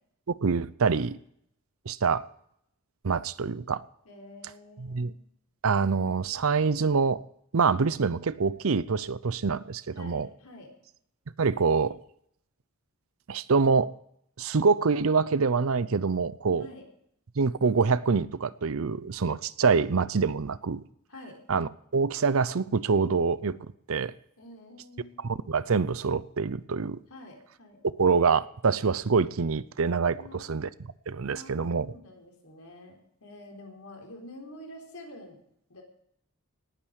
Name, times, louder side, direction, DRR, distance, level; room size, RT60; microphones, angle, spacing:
voice 1, 0.3-1.2 1.9-2.2 3.0-3.8 4.8-5.1 5.6-7.2 7.5-10.3 11.4-12.0 13.3-13.9 14.4-16.7 17.4-20.8 21.5-23.6 23.9-24.1 25.2-27.0 28.0-30.7 31.1-31.9, right 5 dB, 70° right, 18 dB, 0.6 m, -25 dB
voice 2, 4.0-5.2 9.9-10.7 16.6-16.8 21.1-21.4 24.4-25.3 27.1-27.8 30.1-30.7 31.3-35.4 35.7-35.8, left 1 dB, 80° left, 1 dB, 4.1 m, -48 dB
19.0 x 9.0 x 6.4 m, 0.73 s
head